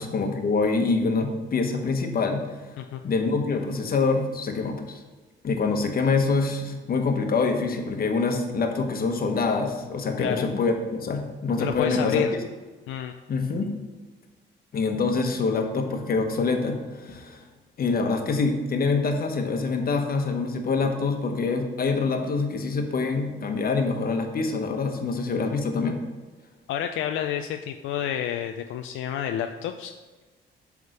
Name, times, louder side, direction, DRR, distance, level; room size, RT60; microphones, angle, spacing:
voice 1, 0.0-2.7 3.0-5.0 5.4-12.3 13.3-13.7 14.7-17.4 17.8-26.0, left 4 dB, 50° left, 4 dB, 1.1 m, -25 dB
voice 2, 11.6-12.3 12.9-13.1 26.7-29.9, left 10 dB, 80° left, 6 dB, 0.4 m, -29 dB
8.0 x 3.6 x 6.4 m, 1.3 s
cardioid pair, 90°, 20 cm